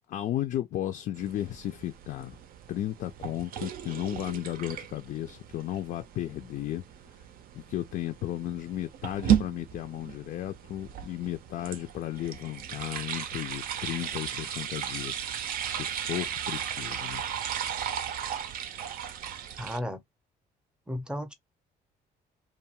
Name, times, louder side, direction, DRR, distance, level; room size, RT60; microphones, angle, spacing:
voice 1, 0.1-2.4 2.7-6.8 7.5-15.3 15.6-17.2, left 13 dB, 55° left, 0.4 m, -34 dB
sound 1, 1.2-19.8, right 9 dB, 60° right, 0.5 m, -35 dB
voice 2, 19.6-20.0 20.9-21.3, equal, 5° right, 0.6 m, -34 dB
2.6 x 2.3 x 2.8 m
cardioid pair, 110°, 17 cm